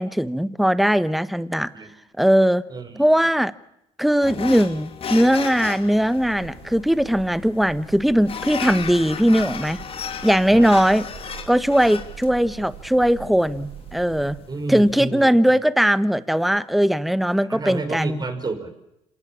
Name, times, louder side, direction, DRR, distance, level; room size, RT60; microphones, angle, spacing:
voice 1, 0.0-1.7 2.2-2.6 3.0-3.5 4.0-9.8 10.2-11.0 11.5-14.4 14.7-18.2, equal, ahead, 16 dB, 1.0 m, -19 dB
voice 2, 2.7-3.1 10.5-10.8 14.5-15.6 17.4-18.7, right 3 dB, 30° right, 9 dB, 5.3 m, -31 dB
sound 1, 4.2-15.1, left 7 dB, 45° left, 3.0 m, -35 dB
Breathing / Bird, 6.0-14.5, right 11 dB, 75° right, 5.0 m, -42 dB
27.5 x 18.0 x 8.7 m, 0.82 s
supercardioid pair, 80°, 14 cm